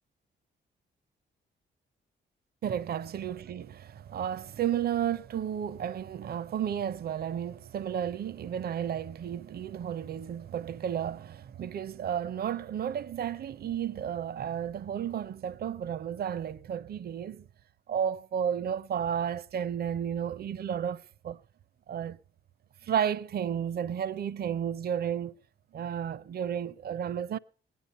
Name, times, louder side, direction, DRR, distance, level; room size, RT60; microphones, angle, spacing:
voice 1, 2.6-17.5 17.9-21.4 21.9-22.2 22.8-25.4 25.7-27.4, right 9 dB, 55° right, 0.6 m, -32 dB
18.0 x 10.0 x 5.2 m
cardioid pair, 100°, 19 cm